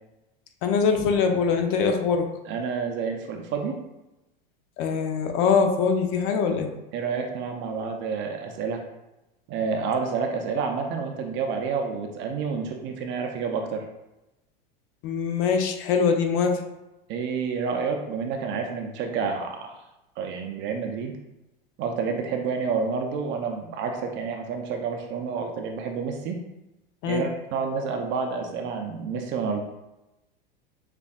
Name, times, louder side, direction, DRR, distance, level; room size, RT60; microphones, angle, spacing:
voice 1, 0.6-2.3 4.8-6.7 15.0-16.6 27.0-27.3, left 5 dB, 50° left, 5 dB, 0.8 m, -23 dB
voice 2, 2.5-3.8 6.9-8.8 9.5-13.9 17.1-19.7 20.2-21.1 21.8-26.4 27.1-29.6, right 5 dB, 40° right, 3 dB, 0.6 m, -29 dB
6.7 x 2.5 x 2.4 m, 0.96 s
hypercardioid pair, 95°, 29 cm